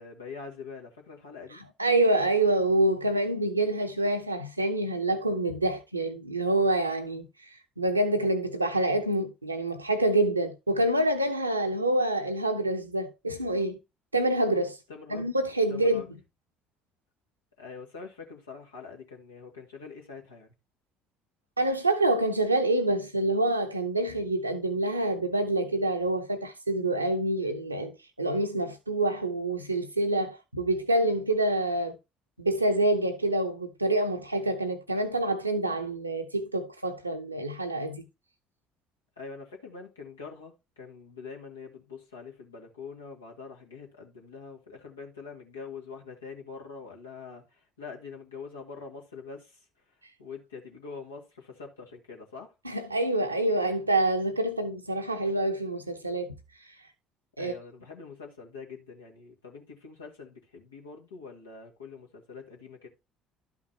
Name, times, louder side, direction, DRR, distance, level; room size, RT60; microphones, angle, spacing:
voice 1, 0.0-1.6 14.9-15.3 15.7-16.1 17.6-20.5 39.2-49.7 50.2-52.5 57.4-62.9, left 5 dB, 80° left, 1.8 m, -44 dB
voice 2, 1.8-7.2 7.8-13.8 14.1-14.8 15.1-16.0 21.6-27.9 28.2-32.0 32.4-38.0 52.6-56.3 57.4-57.5, right 2 dB, 90° right, 0.8 m, -27 dB
12.0 x 5.8 x 2.8 m
figure-of-eight pair, 55°, 0 cm